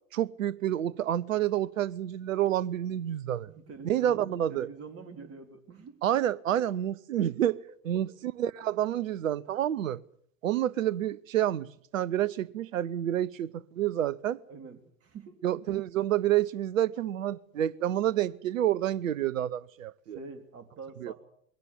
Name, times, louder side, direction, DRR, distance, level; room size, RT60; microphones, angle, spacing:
voice 1, 0.1-3.5 3.8-4.7 6.0-7.6 7.8-10.0 10.4-14.4 15.4-20.2 21.0-21.1, right 11 dB, 65° right, 0.9 m, -29 dB
voice 2, 3.5-6.0 6.5-6.6 14.5-15.4 20.1-21.1, right 4 dB, 35° right, 3.6 m, -46 dB
21.5 x 17.5 x 8.5 m
figure-of-eight pair, 80°, 43 cm